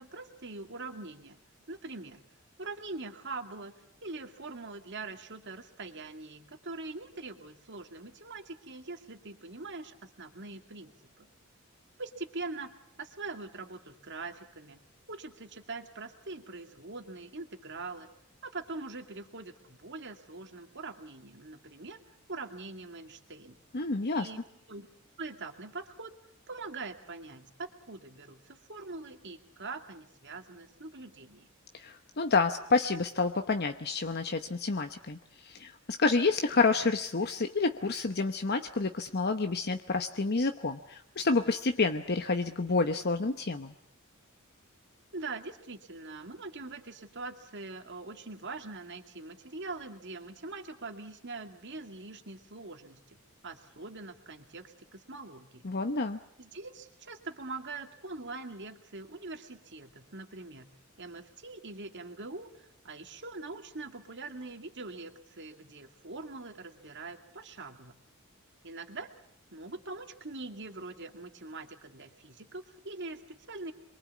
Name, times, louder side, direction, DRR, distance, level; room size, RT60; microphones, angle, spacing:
voice 1, 0.0-1.4 1.7-2.2 2.6-3.7 4.0-11.3 12.0-14.8 15.1-18.1 18.4-22.0 22.3-23.6 24.1-24.4 24.7-24.9 25.2-26.1 26.5-31.5 45.1-53.0 53.4-55.6 56.4-60.7 61.0-67.9 68.6-69.1 69.5-73.7, right 3 dB, 55° right, 6 dB, 2.4 m, -43 dB
voice 2, 23.7-24.3 31.7-35.2 35.4-43.7 55.6-56.2, left 3 dB, 50° left, 7 dB, 1.0 m, -29 dB
27.0 x 23.0 x 8.4 m, 0.72 s
head